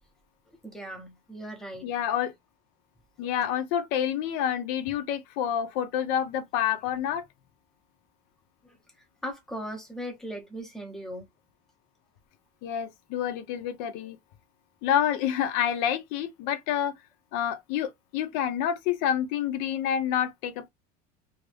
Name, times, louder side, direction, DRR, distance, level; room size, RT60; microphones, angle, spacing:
voice 1, 0.6-1.9 8.6-8.8 9.2-11.2, equal, ahead, 0.7 m, -38 dB
voice 2, 1.8-2.3 3.2-7.2 12.6-14.2 14.8-16.9 17.3-20.7, left 9 dB, 55° left, 0.7 m, -28 dB
2.8 x 2.5 x 3.2 m
cardioid pair, 175°, 19 cm